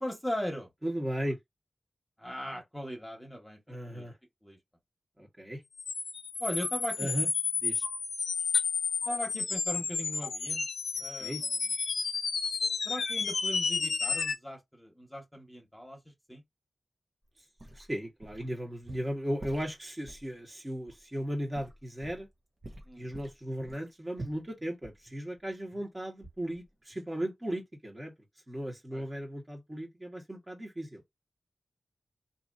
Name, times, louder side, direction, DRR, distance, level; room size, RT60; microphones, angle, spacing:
voice 1, 0.0-0.7 2.2-3.6 3.9-4.1 4.4-4.6 6.4-7.1 9.0-10.7 11.0-11.7 12.8-16.0 16.3-16.4 22.9-23.1 28.9-29.0, equal, 10° left, 1.4 m, -38 dB
voice 2, 0.8-1.4 3.7-4.2 5.2-5.6 7.0-7.3 7.6-7.8 11.2-11.4 17.7-22.3 22.9-28.1 28.5-31.0, equal, 25° right, 1.4 m, -36 dB
sound 1, 5.8-14.4, left 5 dB, 85° left, 0.4 m, -31 dB
sound 2, 17.4-18.5 18.8-20.3 20.9-21.0 21.5-22.3 22.6-25.9 26.2-26.7 26.9-27.0, right 2 dB, 45° right, 1.2 m, -47 dB
2.8 x 2.7 x 2.6 m
cardioid pair, 45°, 0 cm